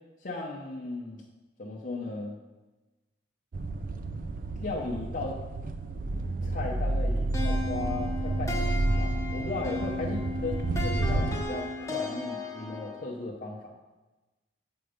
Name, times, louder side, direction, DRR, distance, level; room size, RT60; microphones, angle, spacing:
voice 1, 0.2-1.2 1.6-2.4 4.6-5.4 6.4-13.7, left 3 dB, 50° left, -3 dB, 0.8 m, -36 dB
sound 1, 3.5-11.4, right 2 dB, 50° right, 0.4 m, -30 dB
sound 2, 7.3-13.1, left 2 dB, 15° left, 0.9 m, -35 dB
7.8 x 4.5 x 5.1 m, 1.1 s
head